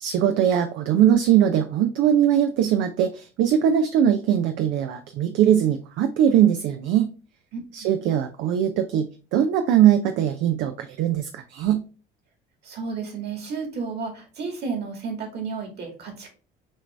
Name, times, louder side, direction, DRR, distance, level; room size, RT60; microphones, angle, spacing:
voice 1, 0.0-7.1 7.7-11.8, right 10 dB, 70° right, 8 dB, 0.5 m, -21 dB
voice 2, 7.5-7.9 12.6-16.3, right 5 dB, 55° right, 2 dB, 2.2 m, -32 dB
6.3 x 2.6 x 3.2 m, 0.36 s
supercardioid pair, 75°, 20 cm